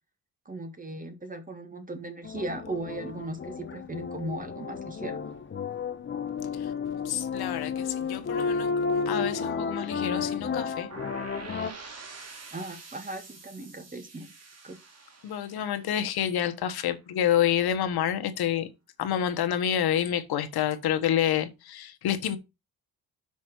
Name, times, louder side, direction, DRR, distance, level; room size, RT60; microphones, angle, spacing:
voice 1, 0.4-5.2 12.5-14.3 14.6-14.8, right 2 dB, 20° right, 1.8 m, -37 dB
sound 1, 2.2-11.7, left 5 dB, 30° left, 0.9 m, -32 dB
voice 2, 7.0-10.9 15.2-18.7 19.0-22.4, left 10 dB, 75° left, 1.2 m, -28 dB
sound 2, 10.9-16.8, right 4 dB, 40° right, 2.2 m, -46 dB
6.1 x 4.6 x 6.0 m
cardioid pair, 100°, 38 cm